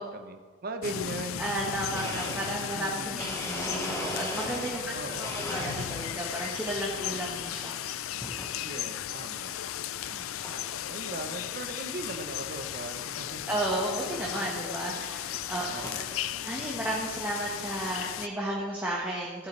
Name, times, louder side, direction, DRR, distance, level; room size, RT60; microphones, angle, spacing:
voice 1, 0.0-1.5 1.9-2.4 2.7-3.3 4.9-5.5 8.6-9.7 10.1-13.4 15.7-16.2, right 2 dB, 45° right, 6 dB, 0.8 m, -40 dB
sound 1, 0.8-18.3, left 11 dB, 80° left, 0.4 m, -36 dB
voice 2, 1.4-4.9 5.2-7.8 8.3-8.5 13.5-16.0 16.4-19.5, right 1 dB, 10° right, -4 dB, 1.3 m, -33 dB
Domestic sounds home sounds, 2.0-4.9 5.2-6.3 6.7-7.2 8.2-8.5 9.1-9.2 10.1-10.2 10.4-10.8 11.2-11.3 11.5-11.6 12.0-12.1 13.5-13.6 14.4-14.5 15.1-16.1, equal, 15° left, 1.3 m, -38 dB
14.5 x 8.6 x 3.3 m, 1.4 s
head